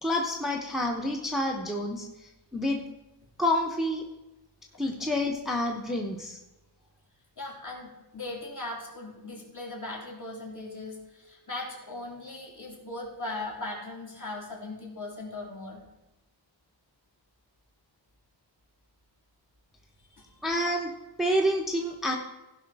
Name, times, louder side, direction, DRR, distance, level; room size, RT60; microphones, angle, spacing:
voice 1, 0.0-2.8 3.4-4.0 4.8-6.4 20.4-20.9 21.2-22.2, left 1 dB, ahead, 1 dB, 0.8 m, -28 dB
voice 2, 7.4-15.8 20.1-20.4, left 2 dB, 45° left, -2 dB, 3.0 m, -39 dB
16.0 x 5.6 x 4.7 m, 1.0 s
wide cardioid pair, 160°, 44 cm